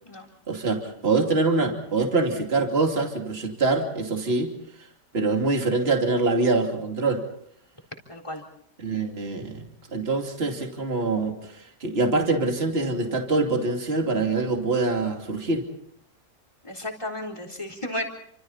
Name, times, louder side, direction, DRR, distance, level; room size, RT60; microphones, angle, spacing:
voice 1, 0.5-4.5 5.1-7.2 8.8-9.6 9.9-15.6, right 3 dB, 35° right, 2 dB, 2.9 m, -24 dB
voice 2, 8.1-8.4 16.6-18.0, left 1 dB, 15° left, 4 dB, 4.0 m, -33 dB
30.0 x 26.5 x 4.3 m, 0.69 s
omnidirectional pair, 1.8 m